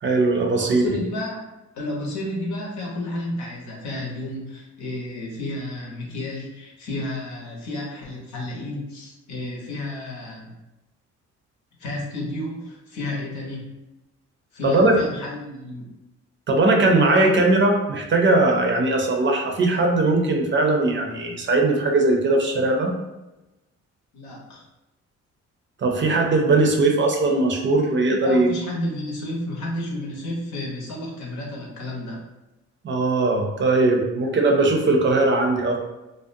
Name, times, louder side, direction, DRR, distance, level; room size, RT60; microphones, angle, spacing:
voice 1, 0.0-1.0 14.6-14.9 16.5-22.9 25.8-28.5 32.8-35.8, right 2 dB, 40° right, 2 dB, 0.5 m, -19 dB
voice 2, 0.5-1.4 1.7-10.5 11.8-13.7 14.5-15.8 17.2-17.4 24.1-24.6 28.2-32.2, left 1 dB, 70° left, -2 dB, 0.8 m, -31 dB
2.4 x 2.1 x 2.6 m, 1.0 s
cardioid pair, 90°, 30 cm